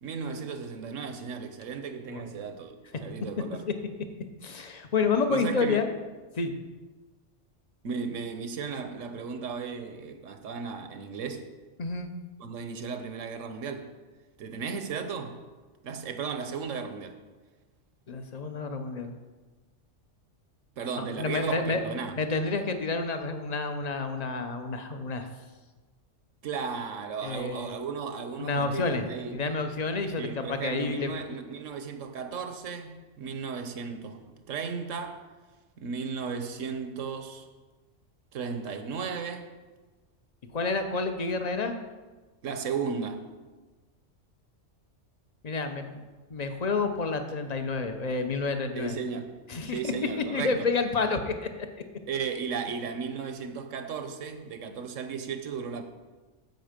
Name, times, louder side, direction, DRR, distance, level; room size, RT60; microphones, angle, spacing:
voice 1, 0.0-2.7 3.0-3.6 5.3-5.9 7.8-11.5 12.4-13.9 14.4-15.4 15.8-17.2 20.8-22.2 26.4-29.5 30.2-34.2 34.5-35.2 35.8-37.5 38.3-39.4 42.4-43.2 48.7-49.4 49.7-50.6 52.1-55.8, right 5 dB, 85° right, 1.3 m, -35 dB
voice 2, 4.4-5.9 6.4-6.5 11.8-12.1 18.1-19.1 21.0-21.8 22.2-25.3 27.2-27.7 28.4-29.0 29.3-31.2 40.5-41.8 45.4-46.0 46.3-49.0 49.5-51.7, left 4 dB, 35° left, 0.9 m, -29 dB
14.5 x 5.7 x 5.1 m
omnidirectional pair, 1.3 m